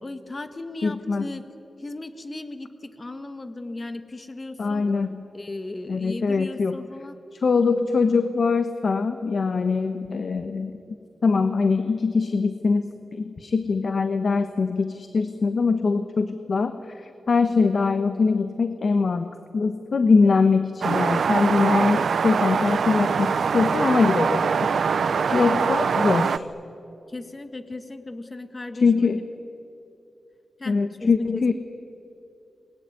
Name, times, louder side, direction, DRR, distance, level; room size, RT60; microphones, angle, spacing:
voice 1, 0.0-1.4 1.8-4.9 5.3-7.2 25.3-25.7 27.1-29.1 30.6-31.5, left 2 dB, 30° left, 9 dB, 1.7 m, -36 dB
voice 2, 0.8-1.3 4.6-5.3 5.9-6.8 7.4-10.7 11.2-24.4 25.3-26.4 28.8-29.2 30.7-31.5, left 4 dB, 55° left, 8 dB, 1.2 m, -22 dB
sound 1, 20.8-26.4, right 6 dB, 75° right, 0.7 m, -23 dB
28.5 x 21.5 x 9.6 m, 2.8 s
wide cardioid pair, 120°, 0 cm